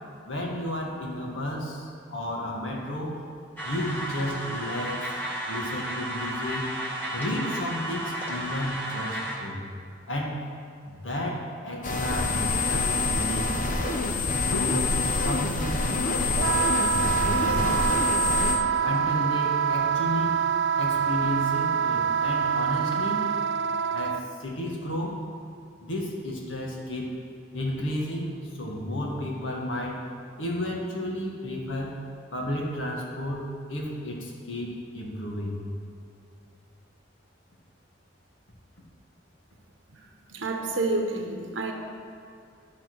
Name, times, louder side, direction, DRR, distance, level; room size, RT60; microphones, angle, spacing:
voice 1, 0.3-3.2 3.6-5.2 5.5-6.7 7.1-9.6 10.1-10.4 10.8-13.5 14.4-17.9 18.7-20.5 20.7-23.3 23.9-25.2 25.8-27.2 27.5-30.0 30.4-32.0 32.3-35.6, left 1 dB, 90° left, -1 dB, 1.7 m, -32 dB
sound 1, 3.6-9.4, right 1 dB, 10° left, 1.5 m, -33 dB
sound 2, 11.8-18.6, left 3 dB, 45° left, 0.8 m, -26 dB
Wind instrument woodwind instrument, 16.4-24.2, right 7 dB, 65° right, 0.3 m, -25 dB
voice 2, 40.3-41.7, right 2 dB, 85° right, 2 dB, 0.9 m, -29 dB
12.0 x 4.2 x 6.2 m, 2.5 s
head